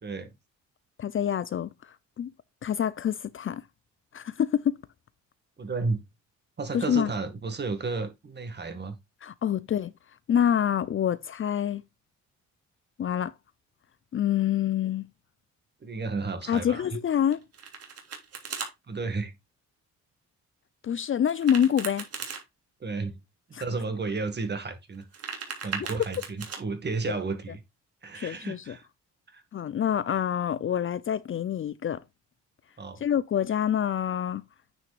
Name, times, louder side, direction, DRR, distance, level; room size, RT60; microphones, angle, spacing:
voice 1, 0.0-0.3 5.6-6.0 6.6-8.9 15.8-16.9 18.9-19.3 22.8-23.2 23.6-25.0 25.6-27.6 28.0-28.9 29.3-29.4 32.8-33.0, right 4 dB, 35° right, 2.0 m, -32 dB
voice 2, 1.0-1.7 2.2-2.3 2.6-3.6 4.1-4.8 6.7-7.1 9.2-9.9 10.3-11.8 13.0-13.3 14.1-15.1 16.5-17.4 20.8-22.0 23.5-23.6 27.1-27.2 28.1-28.8 29.5-32.0 33.0-34.4, left 9 dB, 45° left, 0.6 m, -26 dB
Domestic sounds home sounds, 17.3-18.7 21.3-22.4 24.9-26.6, right 5 dB, 50° right, 3.1 m, -37 dB
9.5 x 6.1 x 2.5 m
cardioid pair, 90°, 30 cm